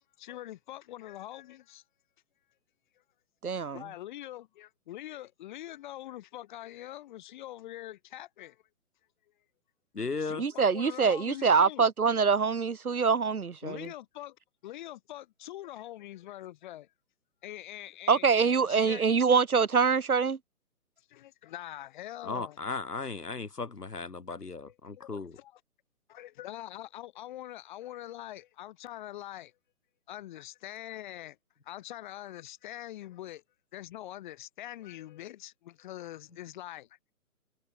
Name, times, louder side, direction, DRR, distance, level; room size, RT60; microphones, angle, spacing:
voice 1, 0.2-1.8 3.7-8.6 10.2-11.9 13.6-14.4 14.6-16.9 17.4-19.0 21.1-22.6 24.3-24.4 24.7-25.5 26.1-29.5 30.1-31.3 31.6-33.4 33.7-36.8, left 14 dB, 30° left, 3.6 m, -44 dB
voice 2, 3.4-3.8 10.4-13.8 18.1-20.4, right 5 dB, 65° right, 2.7 m, -25 dB
voice 3, 9.9-10.4 22.2-25.4, left 4 dB, 80° left, 2.2 m, -36 dB
figure-of-eight pair, 140°, 46 cm